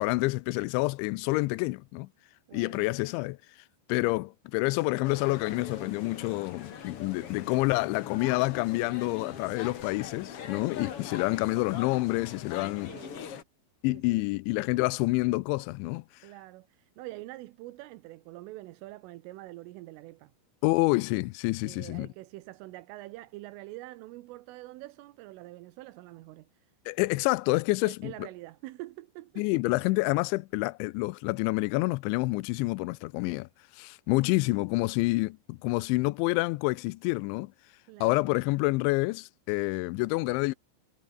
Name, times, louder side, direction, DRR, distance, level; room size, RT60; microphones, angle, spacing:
voice 1, 0.0-2.1 2.5-3.4 3.9-12.9 13.8-16.0 20.6-22.1 26.9-28.3 29.4-33.5 33.8-37.5 38.0-40.5, left 23 dB, 85° left, 2.8 m, -28 dB
voice 2, 2.5-2.9 12.9-13.4 13.9-14.3 16.2-20.3 21.6-26.7 27.9-29.5 37.9-38.2, right 18 dB, 85° right, 3.5 m, -45 dB
sound 1, 5.0-13.4, left 7 dB, 55° left, 1.6 m, -42 dB
omnidirectional pair, 5.7 m